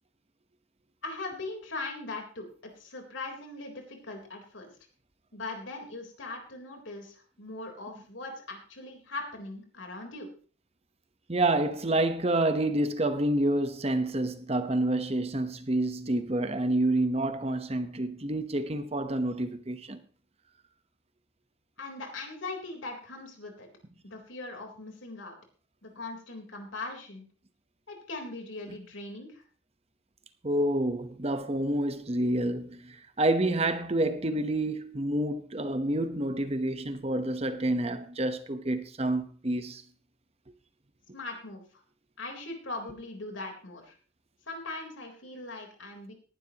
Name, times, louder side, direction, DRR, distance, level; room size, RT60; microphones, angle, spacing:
voice 1, 1.0-4.7 5.3-10.3 21.8-23.7 24.0-25.3 25.8-27.2 27.9-29.4 41.1-41.6 42.2-43.9 44.5-46.1, left 2 dB, 85° left, 3.8 m, -40 dB
voice 2, 11.3-20.0 30.4-39.8, right 1 dB, 35° right, 1.0 m, -28 dB
18.5 x 11.5 x 3.0 m
head